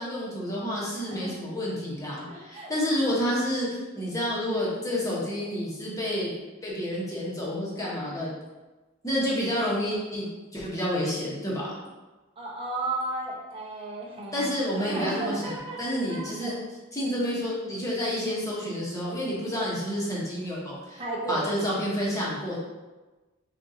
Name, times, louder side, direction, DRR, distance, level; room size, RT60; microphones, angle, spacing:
voice 1, 0.0-3.7 3.9-6.3 6.6-8.3 9.0-11.7 14.3-15.5 15.8-16.5 16.9-21.0 21.3-22.6, equal, 15° left, -6 dB, 1.2 m, -29 dB
voice 2, 1.0-1.5 2.3-2.7 7.8-8.3 12.4-16.6 21.0-21.4, right 2 dB, 30° right, -4 dB, 1.0 m, -34 dB
6.4 x 2.7 x 2.8 m, 1.2 s
head